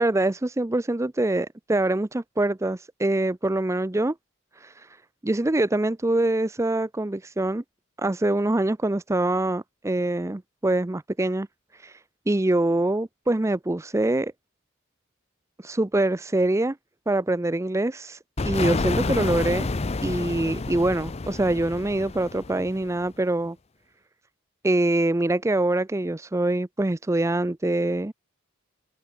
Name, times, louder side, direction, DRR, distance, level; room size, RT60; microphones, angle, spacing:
voice 1, 0.0-4.1 4.6-4.7 5.2-7.6 8.0-11.5 11.8-11.9 12.3-14.3 15.6-16.8 17.1-18.2 18.4-19.7 20.0-23.6 24.6-28.1, right 2 dB, 15° right, 0.5 m, -24 dB
sound 1, 18.4-23.0, left 3 dB, 30° left, 0.6 m, -29 dB
open air
head